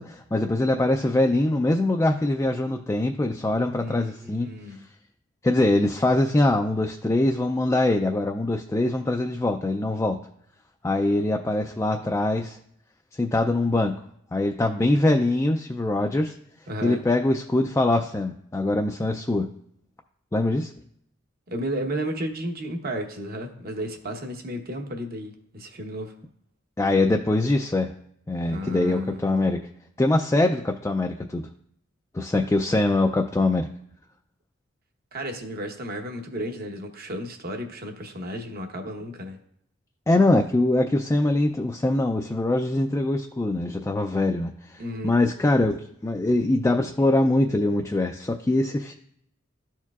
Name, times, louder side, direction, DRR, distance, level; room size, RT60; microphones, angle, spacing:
voice 1, 0.0-4.5 5.4-10.2 10.8-12.6 13.2-14.0 14.3-16.3 16.8-19.5 20.3-20.7 26.8-27.9 28.3-29.6 30.0-31.5 32.1-33.7 40.1-48.9, left 2 dB, 15° left, 3 dB, 0.3 m, -23 dB
voice 2, 3.8-4.8 16.7-17.0 21.5-26.1 28.4-29.5 35.1-39.4 44.8-45.1, equal, 50° right, 4 dB, 1.0 m, -33 dB
13.0 x 4.5 x 2.4 m, 0.71 s
head